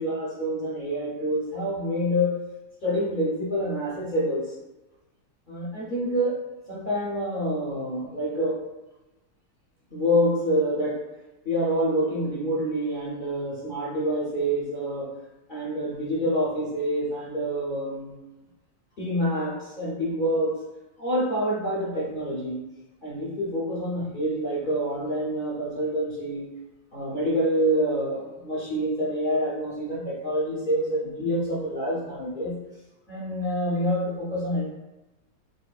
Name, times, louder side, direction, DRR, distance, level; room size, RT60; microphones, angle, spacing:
voice 1, 0.0-2.4 2.8-4.5 5.5-6.4 6.7-8.6 9.9-11.0 11.4-15.1 15.5-18.2 19.0-20.6 21.0-22.6 23.0-26.5 26.9-32.6 33.1-34.7, equal, 60° left, -7 dB, 0.5 m, -27 dB
4.7 x 2.6 x 2.4 m, 1.0 s
omnidirectional pair, 1.9 m